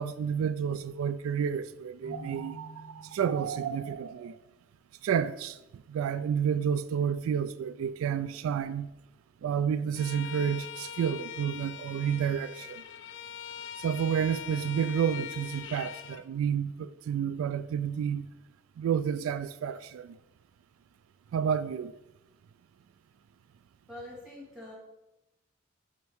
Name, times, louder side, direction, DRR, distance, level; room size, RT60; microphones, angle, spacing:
voice 1, 0.0-4.4 5.0-5.6 5.9-8.9 9.4-12.8 13.8-18.3 18.8-20.1 21.3-21.9, right 8 dB, 90° right, 0.3 m, -30 dB
Keyboard (musical), 2.0-3.9, equal, 45° right, 1.8 m, -48 dB
Bowed string instrument, 10.0-16.2, left 9 dB, 60° left, 0.3 m, -42 dB
voice 2, 23.9-24.8, left 1 dB, 5° right, 2.2 m, -44 dB
5.3 x 5.2 x 4.6 m
head